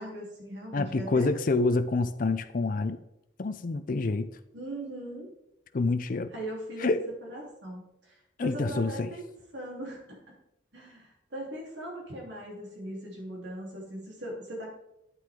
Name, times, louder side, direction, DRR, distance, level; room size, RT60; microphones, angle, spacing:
voice 1, 0.0-1.3 4.5-5.3 6.3-6.9 7.3-10.4 10.7-14.7, right 1 dB, 70° right, 3.5 m, -40 dB
voice 2, 0.7-3.0 3.4-4.3 5.7-6.3 6.8-7.1 8.4-9.1, left 3 dB, 45° left, 0.5 m, -27 dB
9.4 x 8.8 x 3.7 m
head